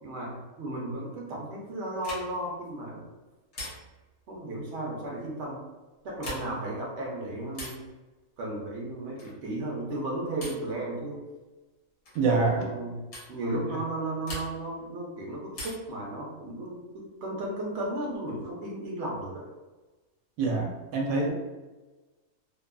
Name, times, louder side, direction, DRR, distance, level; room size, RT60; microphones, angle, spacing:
voice 1, 0.0-3.1 4.3-5.6 6.0-7.9 8.4-11.2 12.3-13.0 13.3-19.5, right 1 dB, 60° right, -2 dB, 0.9 m, -34 dB
sound 1, 2.0-2.5 3.5-4.1 6.1-6.7 7.5-7.9 9.2-9.5 10.4-10.7 12.0-12.3 13.1-13.3 14.2-14.8 15.5-16.0 17.5-18.2, left 1 dB, 70° left, 1.2 m, -42 dB
voice 2, 12.1-12.7 20.4-21.3, right 3 dB, 85° right, -1 dB, 1.0 m, -25 dB
2.7 x 2.3 x 2.3 m, 1.2 s
omnidirectional pair, 1.4 m